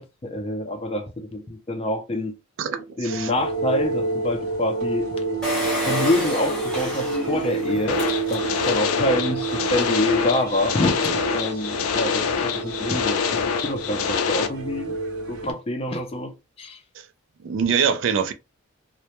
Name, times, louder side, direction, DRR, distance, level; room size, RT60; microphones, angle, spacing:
voice 1, 0.0-2.3 3.0-5.1 5.9-8.0 8.3-15.0 15.3-16.3 16.6-16.8, left 1 dB, 25° left, 0.4 m, -26 dB
voice 2, 2.6-3.3 17.0-17.1 17.4-18.3, right 7 dB, 60° right, 0.3 m, -24 dB
sound 1, 3.1-15.5, right 4 dB, 85° right, 0.8 m, -29 dB
Engine, 5.4-8.9 9.4-9.5 9.6-9.7, left 1 dB, 5° left, 0.7 m, -30 dB
sound 2, 7.9-14.5, left 6 dB, 90° left, 0.4 m, -25 dB
2.1 x 2.1 x 2.9 m
head